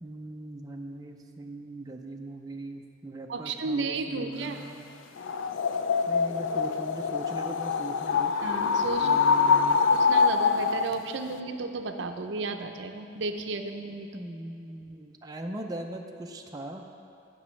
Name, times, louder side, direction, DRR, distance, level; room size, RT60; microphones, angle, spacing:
voice 1, 0.0-4.9 6.1-8.3 9.0-9.9 14.1-16.8, right 1 dB, 20° right, 2 dB, 0.5 m, -40 dB
voice 2, 3.3-4.6 8.4-9.3 9.9-14.2, right 3 dB, 70° right, 6 dB, 0.6 m, -33 dB
sound 1, 5.2-10.9, left 5 dB, 85° left, 0.4 m, -24 dB
18.0 x 6.1 x 3.2 m, 2.5 s
head